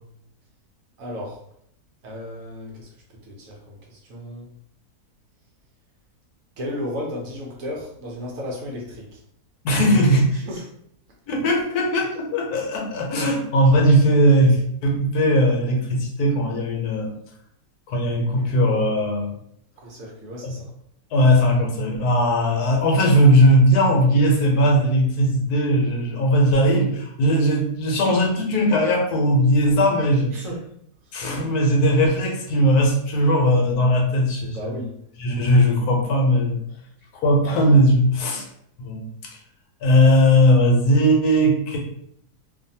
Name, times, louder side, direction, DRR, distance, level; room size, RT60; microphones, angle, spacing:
voice 1, 1.0-1.4 2.0-4.5 6.6-9.2 10.3-10.7 19.8-20.7 30.3-30.6 34.5-34.9, left 1 dB, 65° right, -2 dB, 1.0 m, -34 dB
voice 2, 9.6-10.3 11.3-17.1 17.9-19.3 20.4-20.5 21.1-30.4 31.1-34.8 35.2-36.6 37.1-38.5 38.8-39.4 39.8-41.8, equal, 75° left, 0 dB, 1.1 m, -18 dB
2.5 x 2.5 x 2.7 m, 0.70 s
omnidirectional pair, 1.7 m